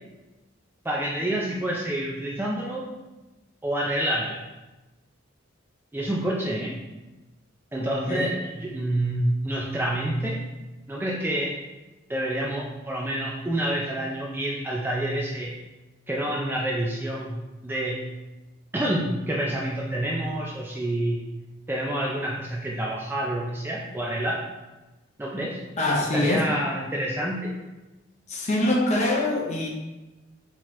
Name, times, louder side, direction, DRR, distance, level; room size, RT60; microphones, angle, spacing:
voice 1, 0.8-2.8 3.6-4.4 5.9-6.8 7.7-10.4 10.9-11.5 12.1-15.6 16.1-18.1 18.7-21.2 21.7-24.4 25.2-25.6 26.1-27.5, right 1 dB, 10° right, -3 dB, 0.4 m, -28 dB
voice 2, 7.8-8.3 25.8-26.5 28.3-29.7, left 1 dB, 35° left, -1 dB, 0.6 m, -24 dB
5.8 x 2.9 x 3.1 m, 1.1 s
head